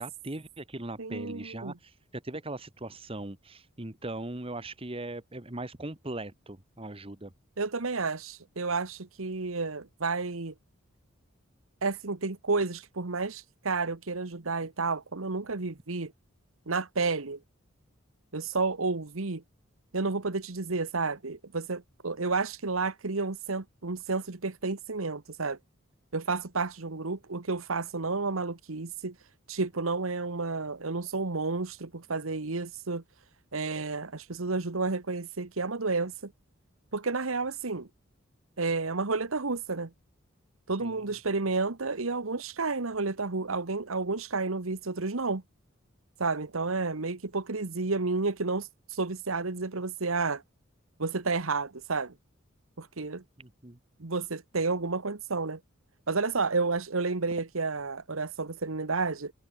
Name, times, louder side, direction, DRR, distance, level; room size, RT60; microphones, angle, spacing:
voice 1, 0.0-7.3 40.8-41.0 53.4-53.8, right 2 dB, 25° right, 1.6 m, -39 dB
voice 2, 1.0-1.7 7.6-10.5 11.8-16.1 16.7-17.4 18.3-19.4 19.9-25.6 26.1-29.1 29.5-33.0 33.5-36.3 36.9-37.9 38.6-39.9 40.7-45.4 46.2-50.4 51.0-52.1 52.8-53.2 54.0-55.6 56.1-59.3, right 3 dB, 85° right, 1.3 m, -31 dB
head